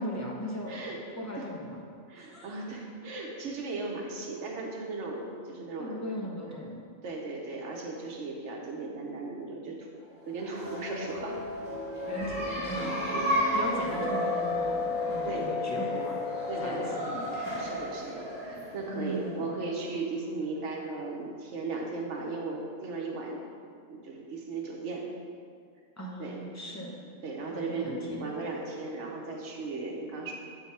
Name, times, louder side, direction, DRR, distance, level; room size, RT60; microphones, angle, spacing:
voice 1, 0.0-1.8 2.1-2.5 5.8-6.8 12.1-16.2 16.6-17.8 18.9-19.5 26.0-26.9 27.5-28.3, equal, 15° left, -3 dB, 0.8 m, -38 dB
voice 2, 0.7-1.0 1.4-1.5 2.1-6.0 7.0-9.9 10.3-11.3 12.7-13.3 15.2-15.5 16.5-16.9 17.6-23.4 23.9-25.1 26.2-26.4 27.0-30.3, right 3 dB, 70° right, 0 dB, 1.2 m, -37 dB
sound 1, 10.3-19.8, left 1 dB, 40° right, 1.8 m, -32 dB
8.0 x 3.9 x 4.2 m, 2.2 s
omnidirectional pair, 1.3 m